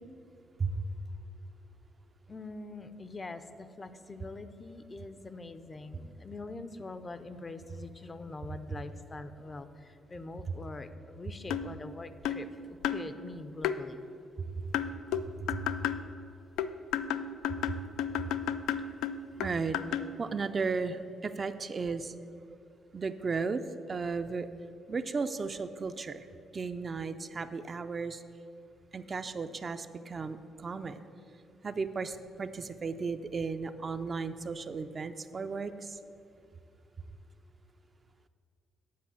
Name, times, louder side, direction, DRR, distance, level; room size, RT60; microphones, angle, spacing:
voice 1, 2.3-14.0, left 2 dB, 30° left, 11 dB, 0.5 m, -44 dB
sound 1, 11.5-11.7 12.2-12.5 12.8-13.1 13.6-13.8 14.7-16.0 16.6-20.1, left 9 dB, 90° left, 0.3 m, -32 dB
voice 2, 19.4-19.8 20.2-22.1 22.9-23.6 23.9-24.5 24.9-26.2 26.5-28.2 28.9-31.0 31.6-36.0, right 4 dB, 40° right, 9 dB, 0.4 m, -35 dB
8.4 x 4.8 x 7.3 m, 2.5 s
cardioid pair, 90°, 0 cm